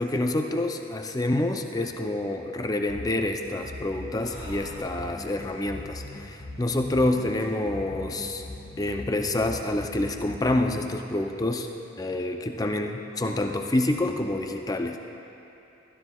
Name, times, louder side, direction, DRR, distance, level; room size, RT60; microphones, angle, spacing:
voice 1, 0.0-8.4 8.8-11.7 12.0-15.0, left 1 dB, 20° left, 4 dB, 0.4 m, -27 dB
sound 1, 2.9-10.9, left 2 dB, 45° left, 1.6 m, -41 dB
Breathing, 4.0-7.6, left 1 dB, 70° left, 2.8 m, -48 dB
16.0 x 12.5 x 2.3 m, 2.9 s
head